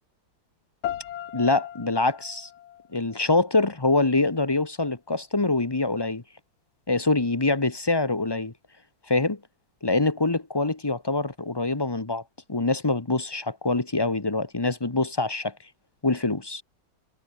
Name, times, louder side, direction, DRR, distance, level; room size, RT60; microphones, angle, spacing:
sound 1, 0.8-3.8, left 11 dB, 80° left, 1.9 m, -37 dB
voice 1, 1.3-2.5 2.9-6.2 6.9-8.5 9.1-9.4 9.8-12.2 12.5-15.5 16.0-16.6, left 2 dB, 15° left, 0.9 m, -24 dB
omnidirectional pair, 2.2 m